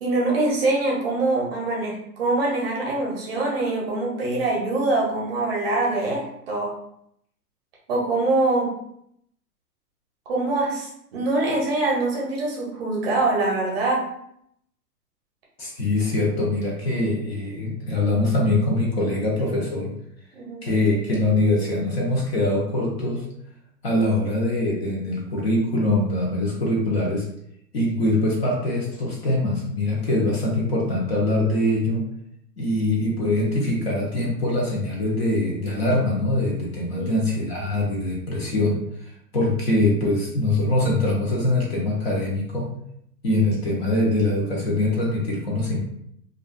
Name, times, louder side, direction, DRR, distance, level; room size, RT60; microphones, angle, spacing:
voice 1, 0.0-6.7 7.9-8.7 10.3-14.0 20.3-20.6 37.0-37.2, right 2 dB, 35° right, -3 dB, 0.7 m, -24 dB
voice 2, 15.6-19.9 20.6-23.3 23.8-27.3 27.7-32.1 32.6-38.8 39.3-42.7 43.2-45.8, left 1 dB, 40° left, -2 dB, 0.6 m, -23 dB
2.3 x 2.2 x 2.4 m, 0.73 s
hypercardioid pair, 140°, 49 cm